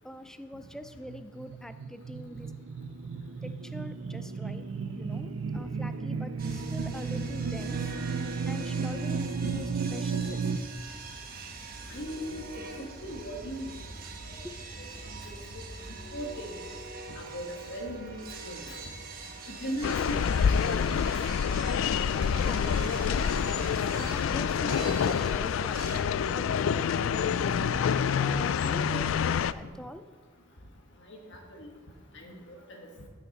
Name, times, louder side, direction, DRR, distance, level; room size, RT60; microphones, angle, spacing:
voice 1, 0.0-2.5 3.4-4.6 5.0-7.8 8.5-10.5 14.4-14.5 22.4-27.6 28.2-29.1 29.5-30.0, equal, 5° left, 9 dB, 0.4 m, -44 dB
sound 1, 0.8-10.6, right 5 dB, 75° right, 0.5 m, -34 dB
sound 2, 6.4-26.0, right 3 dB, 50° right, 1.2 m, -43 dB
voice 2, 11.9-12.4 12.8-13.7 14.3-14.4 15.5-15.6 16.1-16.5 17.2-18.2 18.4-18.7 19.5-21.0 27.6-27.7 31.1-31.2 31.6-31.7 32.1-32.4, equal, 65° left, 0 dB, 1.4 m, -37 dB
sound 3, 19.8-29.5, left 7 dB, 80° left, 0.3 m, -27 dB
15.0 x 5.9 x 4.1 m, 1.5 s
head